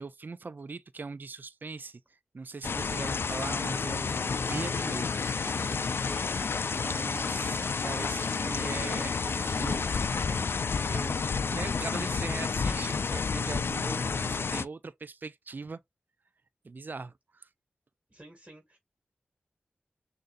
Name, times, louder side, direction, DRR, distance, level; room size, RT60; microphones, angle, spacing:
voice 1, 0.0-5.5 6.7-9.8 10.1-10.4 10.8-15.8 16.6-17.5, right 4 dB, 50° right, 0.4 m, -41 dB
sound 1, 2.6-14.7, left 5 dB, 70° left, 0.4 m, -30 dB
Insect, 4.5-10.1, right 4 dB, 85° right, 0.8 m, -50 dB
voice 2, 6.0-7.1 18.1-18.8, right 1 dB, 25° right, 1.8 m, -51 dB
6.4 x 2.6 x 2.5 m
cardioid pair, 40°, 4 cm